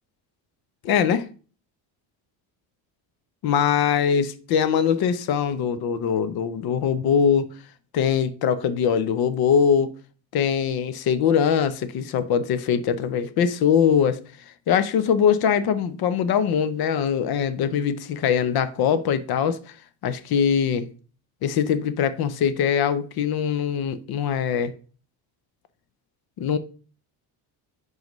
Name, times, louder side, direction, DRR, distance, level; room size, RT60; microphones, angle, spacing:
voice 1, 0.8-1.3 3.4-7.5 7.9-9.9 10.3-14.2 14.7-19.6 20.0-20.9 21.4-24.7 26.4-26.6, left 7 dB, 50° left, 0.7 m, -22 dB
10.5 x 3.9 x 3.0 m
cardioid pair, 160°, 46 cm